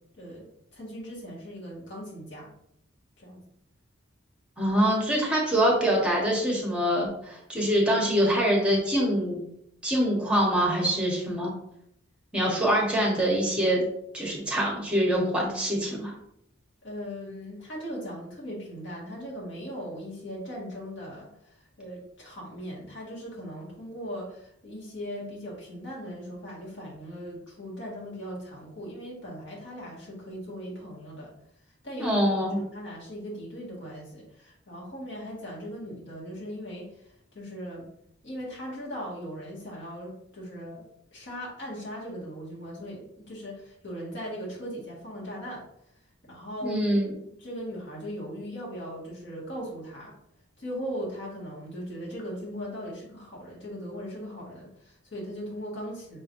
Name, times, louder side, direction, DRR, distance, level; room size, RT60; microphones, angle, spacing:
voice 1, 0.1-2.5 3.2-3.4 16.8-31.3 31.8-32.2 32.7-37.9 38.2-45.6 46.2-47.0 47.4-50.1 50.6-56.2, equal, 60° left, -5 dB, 1.7 m, -39 dB
voice 2, 4.6-9.4 9.8-11.5 12.3-13.8 14.1-16.1 32.0-32.6 46.6-47.1, equal, 5° right, -3 dB, 1.2 m, -24 dB
6.0 x 3.3 x 2.6 m, 0.74 s
head